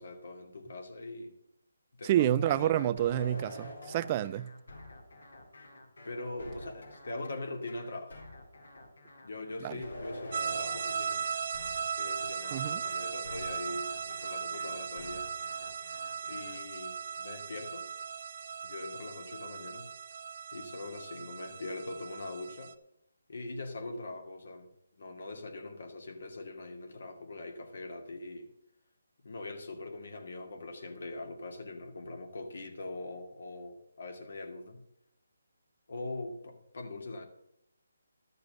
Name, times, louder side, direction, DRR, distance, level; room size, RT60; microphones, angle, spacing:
voice 1, 0.0-1.3 2.0-2.9 6.0-8.2 9.2-11.2 12.0-15.3 16.2-17.9 18.6-19.9 20.5-22.7 23.3-28.5 29.2-34.8 35.9-37.3, left 2 dB, 65° left, 2.5 m, -42 dB
voice 2, 2.0-4.5 9.6-9.8 12.5-12.8, right 12 dB, 25° right, 0.4 m, -28 dB
sound 1, 3.0-16.6, left 1 dB, 85° left, 4.0 m, -47 dB
sound 2, 10.3-22.7, right 6 dB, 45° right, 0.8 m, -38 dB
12.0 x 6.8 x 6.8 m
figure-of-eight pair, 160°, 0 cm